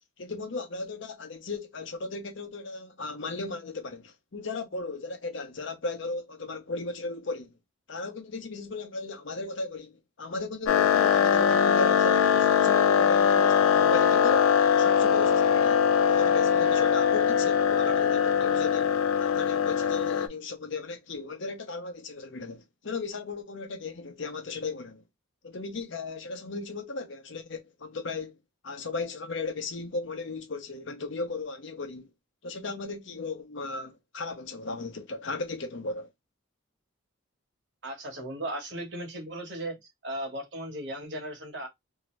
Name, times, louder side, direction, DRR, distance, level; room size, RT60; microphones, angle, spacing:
voice 1, 0.2-7.5 7.9-14.4 14.7-25.0 25.4-28.4 28.6-32.1 32.4-36.1, left 3 dB, 60° left, 0.7 m, -36 dB
sound 1, 10.7-20.3, left 7 dB, 85° left, 0.4 m, -22 dB
voice 2, 37.8-39.8 40.0-41.7, right 1 dB, 55° right, 1.1 m, -36 dB
2.7 x 2.5 x 3.1 m
head